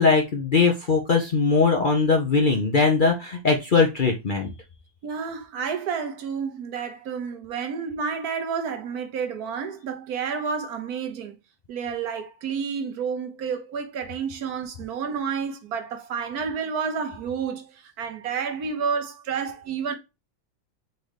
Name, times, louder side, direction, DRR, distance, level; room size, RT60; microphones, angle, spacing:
voice 1, 0.0-4.5, left 4 dB, 45° left, 0.7 m, -20 dB
voice 2, 5.0-11.4 11.7-19.9, right 6 dB, 70° right, 1.3 m, -30 dB
4.2 x 3.8 x 3.3 m
omnidirectional pair, 1.7 m